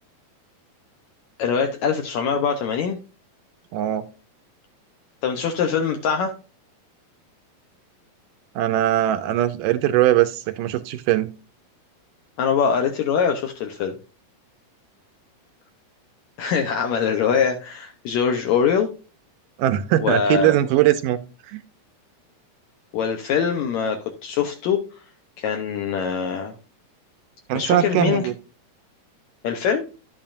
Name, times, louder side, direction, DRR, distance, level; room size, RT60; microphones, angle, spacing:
voice 1, 1.4-3.0 5.2-6.3 12.4-14.0 16.4-18.9 20.0-20.6 22.9-24.8 25.4-26.5 27.5-28.2 29.4-29.9, left 6 dB, 80° left, 4 dB, 1.6 m, -23 dB
voice 2, 3.7-4.1 8.6-11.3 19.6-21.2 21.5-21.6 27.5-28.3, right 13 dB, 80° right, 10 dB, 2.0 m, -20 dB
11.0 x 8.7 x 2.5 m, 0.33 s
omnidirectional pair, 4.2 m